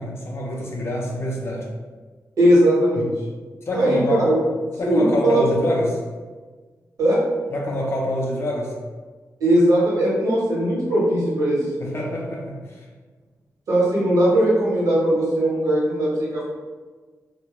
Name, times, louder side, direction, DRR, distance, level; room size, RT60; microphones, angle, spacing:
voice 1, 0.0-1.7 3.0-3.1 3.7-4.3 4.8-6.0 7.5-8.7 11.8-12.9, left 1 dB, 45° left, -2 dB, 0.4 m, -26 dB
voice 2, 2.4-3.1 3.7-4.4 4.8-5.4 7.0-7.2 9.4-11.6 13.7-16.4, right 1 dB, 70° right, -7 dB, 0.9 m, -19 dB
2.2 x 2.1 x 2.9 m, 1.4 s
wide cardioid pair, 115°, 6 cm